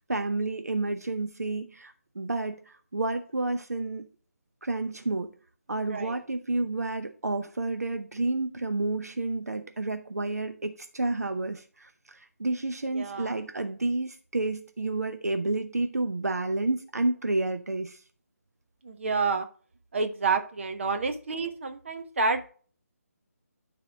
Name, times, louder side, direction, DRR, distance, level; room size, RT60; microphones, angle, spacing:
voice 1, 0.0-4.1 4.6-5.3 5.7-18.0, right 2 dB, 75° right, 7 dB, 0.8 m, -30 dB
voice 2, 12.9-13.4 18.8-19.5 19.9-22.5, right 4 dB, 50° right, 6 dB, 1.0 m, -29 dB
12.0 x 4.0 x 3.5 m, 0.42 s
figure-of-eight pair, 150°, 9 cm